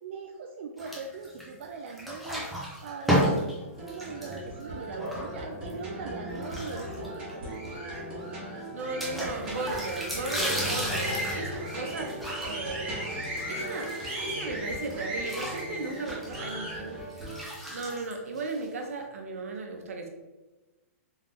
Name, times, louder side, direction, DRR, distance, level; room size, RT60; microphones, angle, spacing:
voice 1, 0.0-3.6 3.8-7.8, right 4 dB, 55° right, 2 dB, 0.4 m, -41 dB
sound 1, 0.8-1.6 1.9-5.7 6.3-7.3 7.6-7.7 7.9-8.0 9.0-14.5 14.8-18.8, equal, ahead, 0.6 m, -33 dB
sound 2, 3.7-17.4, right 1 dB, 15° right, 1.4 m, -37 dB
voice 2, 8.7-12.1 12.4-13.0 13.5-13.9 14.2-17.0 17.7-20.1, right 3 dB, 80° right, 2 dB, 0.9 m, -35 dB
3.6 x 3.3 x 3.5 m, 1.2 s
hypercardioid pair, 160°, 8 cm